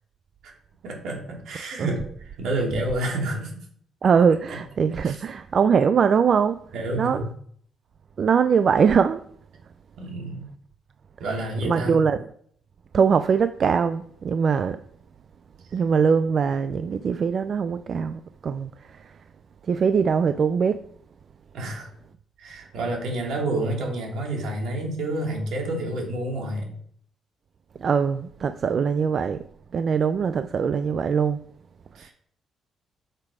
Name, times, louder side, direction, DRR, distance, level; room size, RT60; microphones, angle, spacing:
voice 1, 0.8-3.5 4.5-4.6 5.0-5.2 6.7-7.3 10.0-10.4 11.2-12.0 21.5-21.9 22.4-26.7 31.9-32.1, right 1 dB, 75° right, 2.7 m, -29 dB
voice 2, 4.0-6.6 6.9-7.2 8.2-9.2 11.6-12.2 12.9-14.8 15.7-19.2 19.7-20.8 27.8-29.4 29.7-31.4, right 6 dB, 50° right, 0.4 m, -22 dB
6.7 x 5.9 x 4.8 m
cardioid pair, 90°, 0 cm